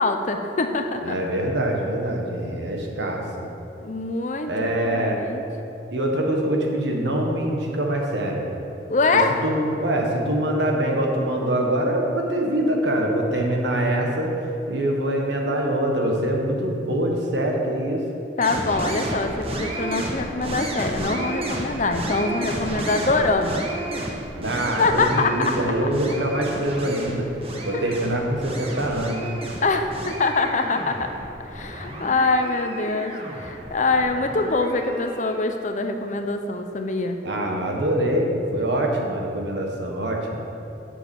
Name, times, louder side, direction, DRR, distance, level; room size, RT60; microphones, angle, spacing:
voice 1, 0.0-1.2 3.8-5.4 8.9-9.4 18.4-23.6 24.8-25.9 27.7-27.8 29.6-31.1 31.4-37.2, left 3 dB, 40° left, 6 dB, 0.6 m, -24 dB
voice 2, 1.0-3.4 4.5-5.2 5.9-8.4 9.4-14.3 14.7-18.0 24.3-27.3 27.6-29.2 37.2-40.4, right 1 dB, 70° right, 0 dB, 1.6 m, -24 dB
sound 1, 18.4-35.4, right 1 dB, 30° right, 1.2 m, -32 dB
8.4 x 7.2 x 7.2 m, 2.9 s
head